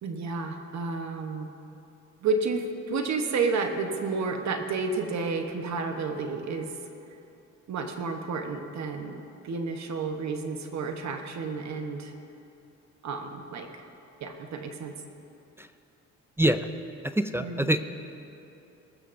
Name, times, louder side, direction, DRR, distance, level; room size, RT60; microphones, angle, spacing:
voice 1, 0.0-1.5 2.2-6.7 7.7-12.1 13.0-13.8 14.2-14.9 17.4-17.7, right 4 dB, 65° right, 4 dB, 1.1 m, -31 dB
voice 2, 16.4-16.7 17.0-17.9, right 1 dB, 10° right, 8 dB, 0.4 m, -25 dB
20.0 x 13.5 x 2.6 m, 2.8 s
cardioid pair, 90°, 30 cm